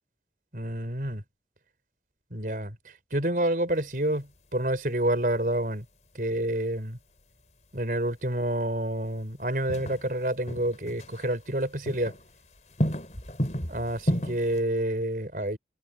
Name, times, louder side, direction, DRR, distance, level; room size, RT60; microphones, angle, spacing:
voice 1, 0.5-1.2 2.3-5.8 6.1-7.0 7.7-12.1 13.7-15.6, right 1 dB, 50° right, 5.1 m, -28 dB
sound 1, 4.5-4.7 7.9-8.0 9.7-11.3 11.6-12.3 12.6-14.6, equal, 40° left, 4.9 m, -32 dB
head